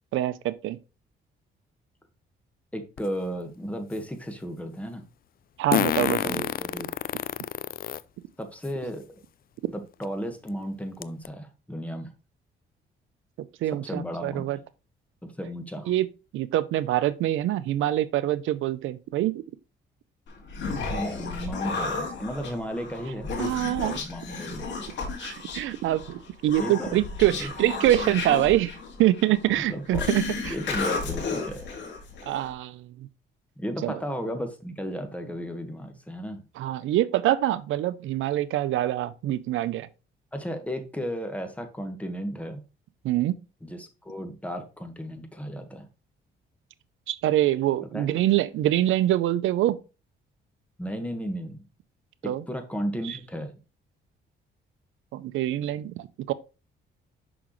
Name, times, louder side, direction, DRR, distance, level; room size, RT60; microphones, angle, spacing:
voice 1, 0.1-0.8 5.6-6.4 13.6-14.6 15.9-16.1 16.3-19.4 23.4-24.0 25.2-28.7 29.0-30.5 32.3-33.1 33.8-34.0 36.6-39.9 43.0-43.4 47.1-49.8 52.2-52.4 53.0-53.2 55.1-56.3, right 14 dB, 80° right, 0.6 m, -25 dB
voice 2, 2.7-5.0 6.2-6.9 8.4-9.2 9.7-12.1 13.7-14.5 15.2-15.9 20.9-23.3 23.7-24.7 26.6-26.9 27.4-27.5 29.5-30.1 30.5-31.7 33.6-36.4 40.3-42.6 43.6-45.9 47.8-48.1 50.8-51.6 52.2-53.5, equal, 5° left, 1.4 m, -34 dB
Fart, 3.0-3.1 5.7-8.0 8.6-8.7 10.0-10.1 10.5-10.6 11.0-11.3, left 10 dB, 50° left, 0.4 m, -27 dB
Human voice, 20.3-32.5, left 4 dB, 65° left, 2.0 m, -33 dB
6.2 x 5.9 x 3.1 m
cardioid pair, 90°, 20 cm